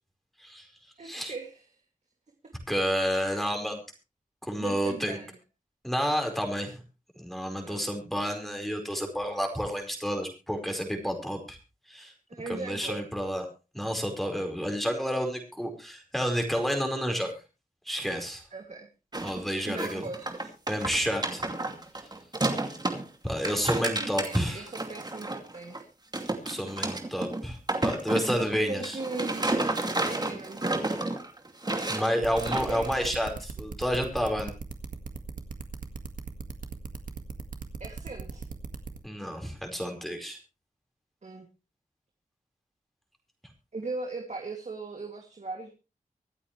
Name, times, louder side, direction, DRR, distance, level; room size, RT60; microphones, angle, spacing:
voice 1, 1.0-1.7 4.6-5.4 7.6-7.8 12.3-13.0 18.5-18.9 19.6-20.5 23.7-25.8 28.7-29.5 30.1-31.1 32.7-32.9 37.8-38.4 41.2-41.5 43.7-45.7, right 3 dB, 55° right, 2 dB, 2.6 m, -38 dB
voice 2, 2.7-3.8 4.4-5.2 5.8-6.8 7.2-11.6 11.9-12.1 12.5-13.4 13.7-17.3 17.9-18.4 19.2-20.1 20.7-21.4 23.2-24.6 26.4-29.0 31.9-34.5 39.0-40.4, equal, ahead, 3 dB, 4.8 m, -30 dB
sound 1, 19.1-19.4 19.7-23.0 23.3-25.8 26.1-33.4, right 2 dB, 30° right, 2.5 m, -31 dB
sound 2, 32.2-39.0, right 4 dB, 75° right, 1.8 m, -38 dB
25.0 x 8.6 x 3.3 m, 0.31 s
wide cardioid pair, 80°, 14 cm